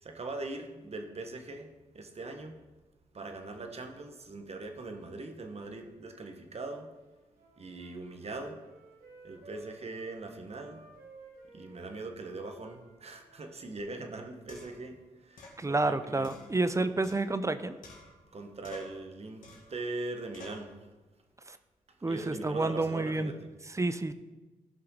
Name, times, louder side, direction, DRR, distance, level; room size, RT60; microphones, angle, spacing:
voice 1, 0.0-2.6 3.1-6.9 7.6-8.6 9.2-10.9 11.5-16.5 16.8-16.9 18.3-20.8 22.1-23.5, right 2 dB, 45° right, 5 dB, 1.4 m, -41 dB
Wind instrument woodwind instrument, 7.1-10.1 10.5-13.9, right 3 dB, 80° right, 2.4 m, -55 dB
sound 1, 13.8-13.9 14.5-14.9 15.4-15.6 16.2-17.5 17.8-18.4 18.6-19.0 19.4-19.8 20.3-20.7, left 2 dB, 75° left, 2.1 m, -50 dB
voice 2, 15.6-17.8 21.5-21.6 22.0-23.3 23.7-24.1, right 2 dB, 20° right, 12 dB, 0.7 m, -29 dB
15.0 x 5.7 x 3.9 m, 1.2 s
supercardioid pair, 55°, 14 cm